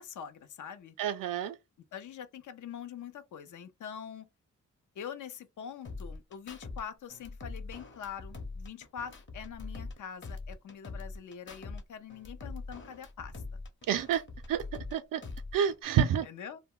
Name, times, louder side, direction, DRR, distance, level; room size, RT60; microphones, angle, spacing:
voice 1, 0.0-1.0 1.9-4.3 5.0-13.3 16.2-16.6, left 8 dB, 60° left, 0.6 m, -44 dB
voice 2, 1.0-1.5 13.9-14.2 14.5-14.6 14.9-15.2 15.5-16.3, right 9 dB, 75° right, 0.5 m, -28 dB
sound 1, 5.8-6.8 7.1-10.0 10.2-11.8 12.1-14.9 15.2-15.8, left 3 dB, 35° left, 0.8 m, -43 dB
2.1 x 2.1 x 3.6 m
cardioid pair, 70°, 33 cm